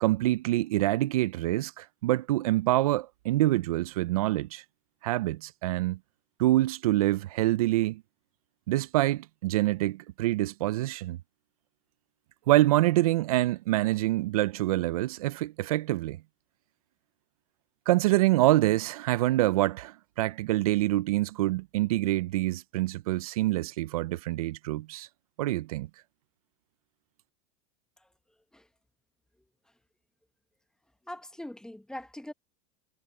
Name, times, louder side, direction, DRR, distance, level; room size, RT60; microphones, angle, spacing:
voice 1, 0.0-4.6 5.0-6.0 6.4-8.0 8.7-11.2 12.5-16.2 17.9-25.1 25.4-25.9, right 16 dB, 85° right, 0.6 m, -26 dB
voice 2, 31.1-32.3, left 1 dB, 5° left, 1.1 m, -41 dB
supercardioid pair, 110°, 18 cm